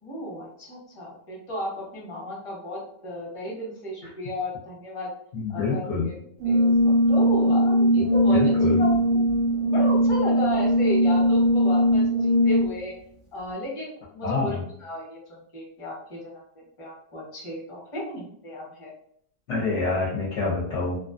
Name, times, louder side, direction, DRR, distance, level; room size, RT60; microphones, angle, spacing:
voice 1, 0.0-5.1 5.5-6.2 6.4-8.4 8.8-9.2 9.7-12.9 13.3-15.2 15.5-16.2 16.8-18.9, left 1 dB, 25° left, -5 dB, 0.8 m, -34 dB
voice 2, 5.3-6.1 8.0-8.8 14.2-14.6 19.5-21.0, left 3 dB, 60° left, -6 dB, 0.8 m, -27 dB
Brass instrument, 6.4-12.8, equal, 50° right, 0.6 m, -20 dB
2.5 x 2.3 x 2.4 m, 0.65 s
omnidirectional pair, 1.6 m